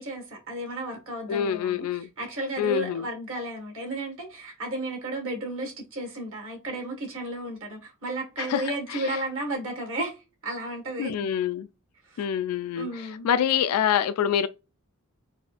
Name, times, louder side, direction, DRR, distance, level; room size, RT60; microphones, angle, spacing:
voice 1, 0.0-11.3 12.0-12.2 12.7-13.5, right 1 dB, 65° right, 1.5 m, -34 dB
voice 2, 1.3-2.1 2.6-3.1 8.4-9.2 11.0-11.7 12.2-12.9 13.2-14.5, left 9 dB, 85° left, 0.3 m, -26 dB
4.1 x 2.4 x 2.4 m
head